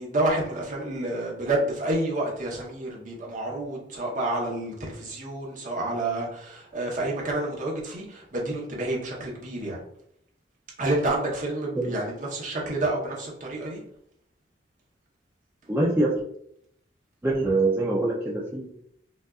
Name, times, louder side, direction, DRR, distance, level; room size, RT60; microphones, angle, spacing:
voice 1, 0.0-9.8 10.8-13.8, right 2 dB, 45° right, -3 dB, 1.0 m, -29 dB
voice 2, 15.7-16.1 17.2-18.7, right 2 dB, 10° right, -6 dB, 0.5 m, -24 dB
5.2 x 2.5 x 2.4 m, 0.74 s
head